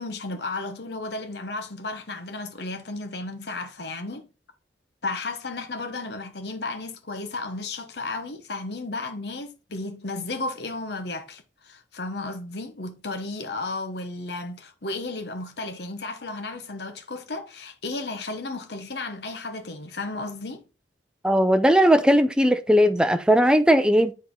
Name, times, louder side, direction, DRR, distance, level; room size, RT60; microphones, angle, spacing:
voice 1, 0.0-4.3 5.0-20.6, left 2 dB, 70° left, 1.0 m, -33 dB
voice 2, 21.2-24.1, equal, 5° right, 0.5 m, -18 dB
8.2 x 4.3 x 3.8 m
head